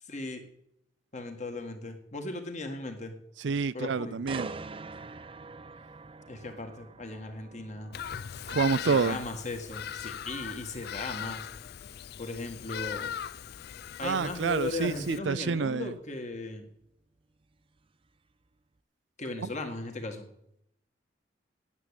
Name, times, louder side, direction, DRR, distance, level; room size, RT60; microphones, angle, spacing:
voice 1, 0.0-0.4 1.1-3.2 3.7-4.2 6.3-8.0 8.8-11.5 12.2-13.2 14.0-16.7 19.2-20.3, left 2 dB, 40° left, 1.8 m, -37 dB
voice 2, 3.4-4.5 8.5-9.2 14.0-15.9, right 5 dB, 75° right, 0.5 m, -28 dB
sound 1, 4.3-18.1 18.5-18.8, right 4 dB, 30° right, 0.5 m, -47 dB
Bird vocalization bird call bird song, 7.9-15.2, left 9 dB, 60° left, 0.4 m, -39 dB
9.6 x 8.7 x 8.2 m
head